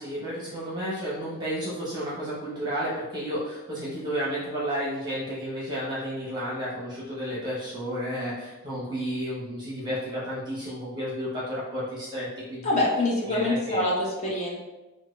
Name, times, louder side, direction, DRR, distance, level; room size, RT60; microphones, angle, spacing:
voice 1, 0.0-12.8 13.3-13.9, equal, 20° right, -8 dB, 0.8 m, -32 dB
voice 2, 12.6-14.6, left 2 dB, 30° left, -4 dB, 0.8 m, -25 dB
3.5 x 2.2 x 3.1 m, 1.1 s
head